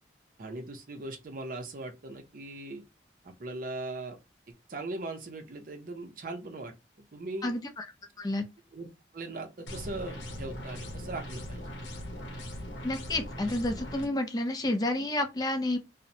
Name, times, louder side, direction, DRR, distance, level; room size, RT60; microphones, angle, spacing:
voice 1, 0.4-2.8 3.2-4.2 4.7-6.7 7.1-7.5 8.7-11.6, right 2 dB, 50° right, 0.5 m, -39 dB
voice 2, 7.4-7.9 8.2-8.5 12.8-15.8, left 1 dB, 20° left, 0.4 m, -30 dB
sound 1, 9.7-14.1, equal, 80° left, 0.8 m, -40 dB
2.9 x 2.0 x 2.6 m
head